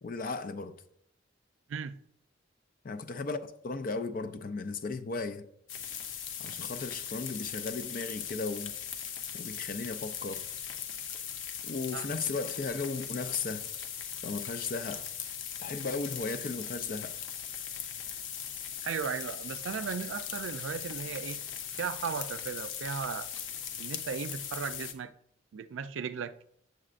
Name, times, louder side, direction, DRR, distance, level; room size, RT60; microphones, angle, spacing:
voice 1, 0.0-0.7 2.8-5.5 6.4-8.7 9.3-10.4 11.6-13.7 14.2-15.1 15.6-17.2, left 4 dB, 45° left, 0.4 m, -36 dB
sound 1, 5.7-24.9, left 8 dB, 85° left, 0.7 m, -39 dB
voice 2, 18.8-21.4 21.7-23.3 23.8-25.1 25.5-26.3, right 6 dB, 85° right, 0.4 m, -36 dB
7.5 x 7.5 x 2.5 m
head